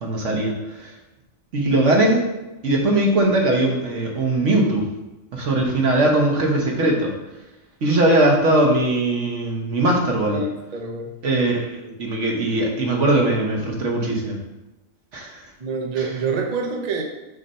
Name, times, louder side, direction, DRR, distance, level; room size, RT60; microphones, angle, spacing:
voice 1, 0.0-0.9 1.5-2.2 2.6-4.8 5.3-7.1 7.8-10.4 11.2-14.4 15.1-15.4 16.0-16.1, right 1 dB, 60° right, -1 dB, 1.5 m, -20 dB
voice 2, 10.3-11.2 15.6-17.0, right 4 dB, 40° right, 1 dB, 0.6 m, -26 dB
6.5 x 2.8 x 5.5 m, 1.0 s
omnidirectional pair, 1.4 m